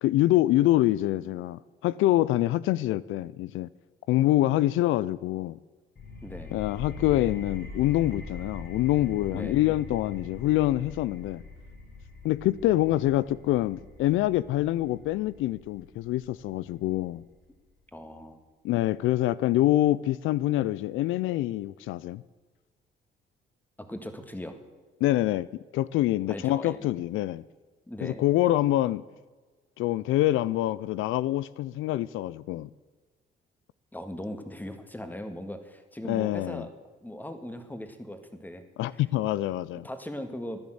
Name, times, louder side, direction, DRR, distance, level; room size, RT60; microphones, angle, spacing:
voice 1, 0.0-3.7 4.1-5.6 6.5-11.4 12.2-17.2 18.6-22.2 25.0-27.4 28.0-29.0 29.8-32.7 36.1-36.6 38.8-39.9, left 15 dB, 85° left, 0.4 m, -25 dB
sound 1, 6.0-17.4, left 3 dB, 50° left, 4.4 m, -42 dB
voice 2, 6.2-6.6 9.3-9.7 17.9-18.4 23.9-24.6 26.3-26.8 27.9-28.2 33.9-36.7 37.0-38.6 38.9-39.0 39.8-40.6, left 1 dB, 10° left, 1.9 m, -39 dB
14.5 x 10.5 x 7.8 m
cardioid pair, 90°, 20 cm